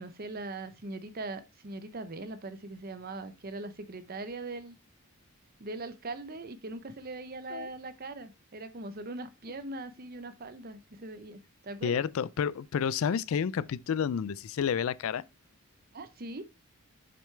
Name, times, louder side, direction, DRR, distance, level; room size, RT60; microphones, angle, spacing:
voice 1, 0.0-4.7 5.6-12.0 15.9-16.4, right 2 dB, 40° right, 0.7 m, -41 dB
voice 2, 11.8-15.3, left 7 dB, 65° left, 0.3 m, -30 dB
6.9 x 6.4 x 3.3 m
head